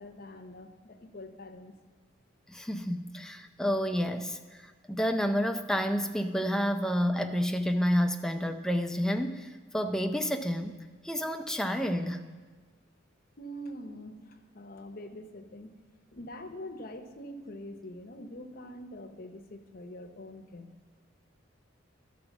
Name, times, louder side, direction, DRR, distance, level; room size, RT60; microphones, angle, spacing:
voice 1, 0.0-1.7 13.4-15.7 16.1-20.8, left 1 dB, 50° left, 6 dB, 0.8 m, -44 dB
voice 2, 2.5-4.4 4.9-9.5 9.7-10.7 11.0-12.2, equal, 5° left, 6 dB, 0.4 m, -29 dB
12.5 x 4.9 x 7.1 m, 1.4 s
head